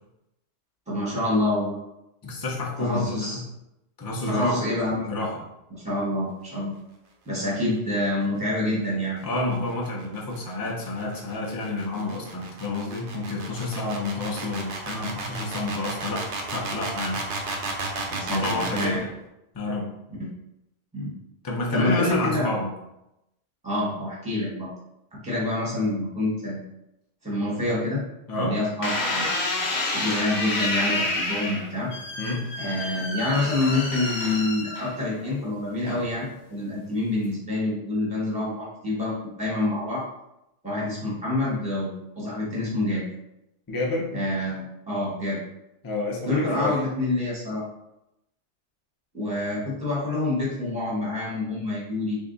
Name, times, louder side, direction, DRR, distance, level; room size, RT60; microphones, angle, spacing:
voice 1, 0.9-1.8 2.8-3.4 4.3-5.1 5.7-6.7 7.2-9.2 18.1-19.0 20.2-20.3 20.9-21.2 21.7-22.5 23.6-24.7 25.1-26.6 27.2-28.0 28.3-29.3 29.9-31.9 32.6-40.0 40.6-43.0 44.1-45.4 46.2-47.6 49.1-52.2, left 1 dB, 5° right, -6 dB, 1.1 m, -27 dB
voice 2, 2.2-3.5 4.0-4.6 5.0-5.4 9.2-16.3 16.5-17.2 18.3-19.1 19.5-19.9 21.4-22.7 28.3-28.6 32.2-32.5 43.7-44.1 45.8-46.8, left 2 dB, 25° left, -2 dB, 0.6 m, -29 dB
sound 1, 9.7-19.0, right 3 dB, 75° right, 1.0 m, -33 dB
sound 2, 28.8-35.2 35.9-36.3, left 2 dB, 65° left, 1.0 m, -29 dB
3.5 x 2.3 x 3.9 m, 0.87 s
omnidirectional pair, 1.2 m